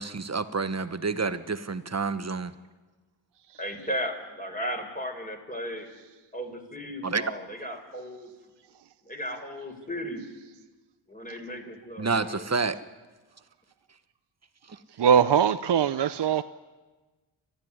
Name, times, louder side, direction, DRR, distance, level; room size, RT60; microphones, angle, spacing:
voice 1, 0.0-2.5 7.0-7.2 12.0-12.8, right 4 dB, 30° right, 12 dB, 1.2 m, -29 dB
voice 2, 3.6-5.9 6.3-8.3 9.0-10.2 11.1-12.5, equal, 15° left, 3 dB, 4.5 m, -35 dB
voice 3, 14.7-16.4, right 8 dB, 55° right, 10 dB, 0.7 m, -22 dB
29.5 x 12.5 x 9.7 m, 1.3 s
cardioid pair, 65°, 49 cm